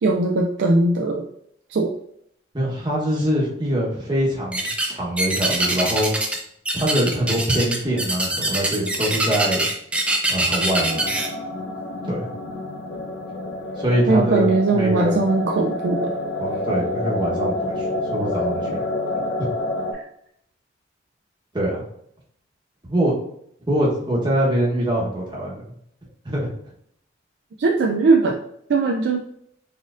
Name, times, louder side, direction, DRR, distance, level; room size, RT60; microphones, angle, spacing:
voice 1, 0.0-1.2 1.7-1.9 14.1-16.1 19.9-20.0 27.6-28.4 28.7-29.2, right 3 dB, 70° right, 1 dB, 0.4 m, -19 dB
voice 2, 2.5-6.1 6.7-9.7 10.3-11.1 12.0-12.3 13.8-15.2 16.4-18.8 19.4-19.5 21.5-21.8 22.9-23.1 23.7-25.6 26.2-26.5, right 1 dB, 25° right, -4 dB, 1.0 m, -23 dB
sound 1, 4.5-4.9 5.2-6.4 6.6-11.3, right 1 dB, 5° right, 0.4 m, -23 dB
sound 2, 10.7-19.9, left 1 dB, 75° left, 0.7 m, -28 dB
4.1 x 3.7 x 2.5 m, 0.70 s
head